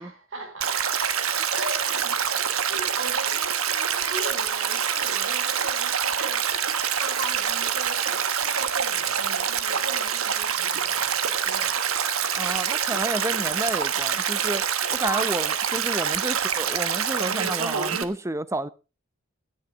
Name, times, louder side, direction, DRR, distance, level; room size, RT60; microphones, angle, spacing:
voice 1, 0.0-6.5 7.0-8.2 8.6-11.8 15.0-15.3, right 2 dB, 70° right, 4.2 m, -38 dB
Stream, 0.6-18.0, right 8 dB, 90° right, 1.3 m, -26 dB
voice 2, 12.3-14.6 14.9-18.7, right 2 dB, 15° right, 0.6 m, -30 dB
17.0 x 13.0 x 3.5 m
head